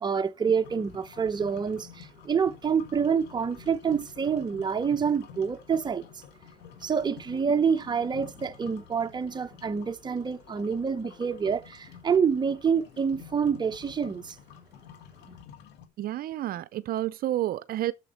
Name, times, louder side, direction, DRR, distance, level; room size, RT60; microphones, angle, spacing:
voice 1, 0.0-6.2 6.8-14.4, right 6 dB, 25° right, 0.9 m, -27 dB
sound 1, 0.6-15.9, left 8 dB, 90° left, 1.5 m, -50 dB
voice 2, 16.0-17.9, right 13 dB, 60° right, 0.5 m, -30 dB
8.4 x 7.1 x 4.2 m
cardioid pair, 110°, 17 cm